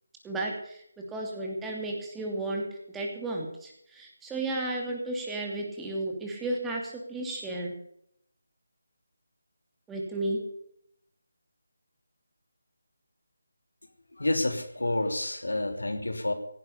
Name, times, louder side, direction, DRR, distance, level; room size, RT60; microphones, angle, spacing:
voice 1, 0.2-0.8 1.1-2.6 2.9-7.7 9.9-10.4, right 2 dB, 5° right, -1 dB, 2.8 m, -33 dB
voice 2, 14.2-16.3, left 1 dB, 90° left, 7 dB, 3.1 m, -29 dB
17.0 x 10.5 x 7.0 m, 0.71 s
figure-of-eight pair, 160°, 0 cm